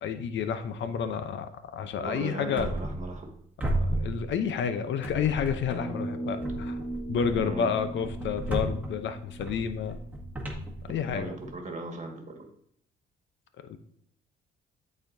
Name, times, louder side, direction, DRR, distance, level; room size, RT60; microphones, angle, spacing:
voice 1, 0.0-2.7 4.0-6.8 7.1-10.0 10.9-11.3 13.7-13.8, left 7 dB, 70° left, 10 dB, 0.7 m, -30 dB
voice 2, 2.0-3.3 7.3-7.9 10.9-12.5, right 2 dB, 35° right, 2 dB, 1.7 m, -38 dB
sound 1, 2.6-3.3 3.6-4.7 5.0-5.9 6.4-11.5, right 1 dB, 10° right, 1.7 m, -34 dB
sound 2, 5.7-10.2, right 2 dB, 5° left, 1.5 m, -38 dB
11.5 x 4.2 x 2.6 m, 0.68 s
cardioid pair, 90°, 20 cm